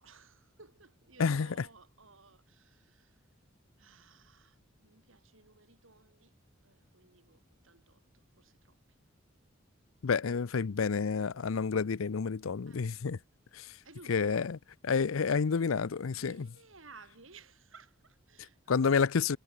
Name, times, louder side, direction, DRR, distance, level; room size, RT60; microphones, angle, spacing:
voice 1, 0.0-3.3 3.8-6.4 6.6-8.8 12.7-12.9 13.8-14.5 16.1-18.8, right 4 dB, 80° right, 6.0 m, -58 dB
voice 2, 10.0-13.2 13.5-13.7 14.1-14.6 14.8-16.4 18.7-19.4, left 5 dB, 90° left, 0.6 m, -29 dB
head